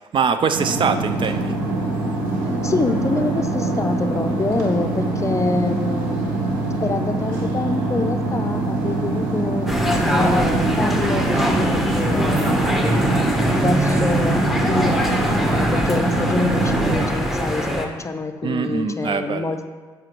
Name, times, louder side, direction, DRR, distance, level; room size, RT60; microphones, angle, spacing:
voice 1, 0.1-1.5 18.4-19.5, right 6 dB, 45° right, 10 dB, 0.4 m, -22 dB
sound 1, 0.5-17.1, right 2 dB, 75° right, 1.1 m, -24 dB
voice 2, 2.6-6.2 6.8-9.7 10.0-13.1 13.5-15.0 15.5-19.7, left 3 dB, 25° left, 8 dB, 0.5 m, -26 dB
sound 2, 9.7-17.9, equal, ahead, 1.0 m, -22 dB
7.4 x 4.9 x 3.0 m, 1.5 s
hypercardioid pair, 50°, 12 cm